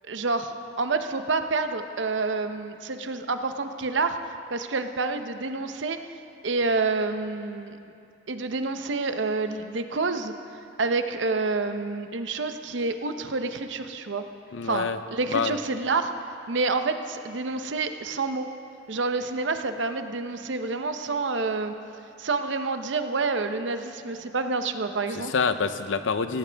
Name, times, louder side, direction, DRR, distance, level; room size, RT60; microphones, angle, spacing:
voice 1, 0.1-4.2 4.5-6.0 6.4-7.8 8.3-10.3 10.8-14.2 14.6-16.1 16.5-18.5 18.9-21.7 22.2-25.3, right 3 dB, 75° right, 8 dB, 0.8 m, -28 dB
voice 2, 14.5-15.0 15.3-15.6 25.2-26.4, left 5 dB, 85° left, 11 dB, 0.6 m, -26 dB
17.0 x 16.5 x 3.4 m, 2.6 s
head